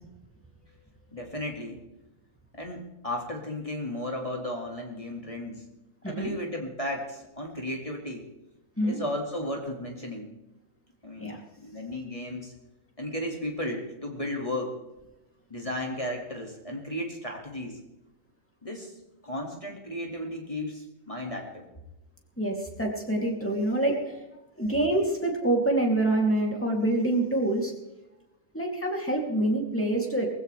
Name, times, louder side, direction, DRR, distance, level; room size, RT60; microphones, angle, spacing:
voice 1, 1.1-1.8 2.5-5.7 6.1-8.3 8.8-10.3 11.0-12.5 13.0-14.7 15.5-17.8 18.6-18.9 19.2-21.7, left 1 dB, 25° left, 1 dB, 2.3 m, -34 dB
voice 2, 6.0-6.4 8.8-9.0 11.2-11.4 22.4-24.2 24.6-27.7 28.5-30.3, right 1 dB, 10° left, 0 dB, 2.8 m, -26 dB
20.0 x 15.5 x 3.4 m, 0.96 s
omnidirectional pair, 1.4 m